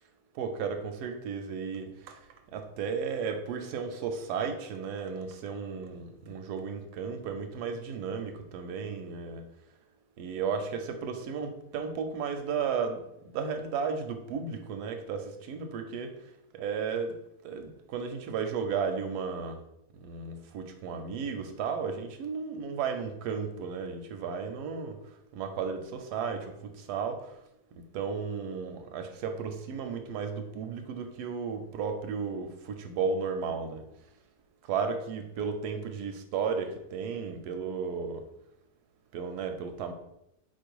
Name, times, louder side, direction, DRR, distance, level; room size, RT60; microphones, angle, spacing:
voice 1, 0.3-2.2 2.5-9.4 10.2-13.1 13.3-16.2 16.5-17.1 17.4-19.6 19.9-27.4 27.9-33.8 34.6-38.2 39.1-39.9, right 6 dB, 85° right, 7 dB, 1.1 m, -34 dB
4.3 x 2.6 x 4.6 m, 0.83 s
omnidirectional pair, 1.7 m